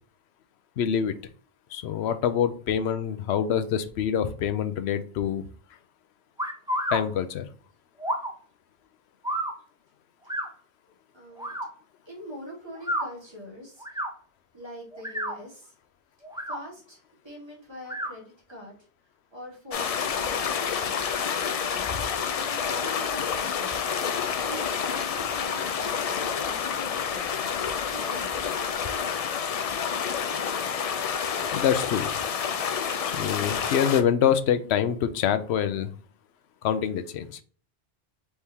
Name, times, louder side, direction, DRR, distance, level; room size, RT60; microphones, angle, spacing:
voice 1, 0.8-1.1 1.7-5.5 6.9-7.5 31.5-32.1 33.1-35.9 36.6-37.4, left 8 dB, 85° left, 11 dB, 0.8 m, -25 dB
sound 1, 6.4-7.0 8.0-8.3 9.2-9.5 10.3-10.5 11.4-11.7 12.8-13.1 13.8-14.1 14.9-15.4 16.2-16.6 17.9-18.1, equal, 5° right, 0.5 m, -30 dB
voice 2, 11.1-11.5 12.1-14.0 14.5-15.7 16.5-18.8 19.3-24.0 24.4-28.5, equal, 25° right, -5 dB, 2.1 m, -44 dB
sound 2, 19.7-34.0, left 7 dB, 55° left, 0.4 m, -29 dB
4.6 x 3.5 x 2.8 m, 0.43 s
omnidirectional pair, 1.1 m